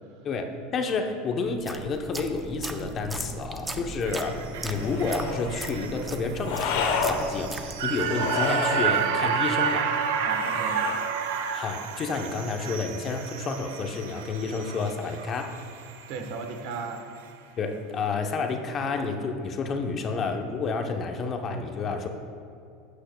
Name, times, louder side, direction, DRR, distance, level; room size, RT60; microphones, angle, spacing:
voice 1, 0.2-9.9 11.5-15.5 17.6-22.1, left 4 dB, 35° left, 5 dB, 0.7 m, -30 dB
sound 1, 1.5-8.2, right 2 dB, 10° right, 0.5 m, -37 dB
voice 2, 3.2-3.7 4.7-4.8 10.2-10.9 16.1-17.1, right 4 dB, 65° right, 5 dB, 1.1 m, -37 dB
sound 2, 4.1-16.4 16.7-16.8, right 7 dB, 85° right, 0.7 m, -31 dB
sound 3, 4.7-5.5 6.4-7.2 8.1-8.9 10.3-11.1, left 5 dB, 70° left, 0.9 m, -30 dB
11.5 x 8.2 x 2.2 m, 2.5 s
supercardioid pair, 120°, 0 cm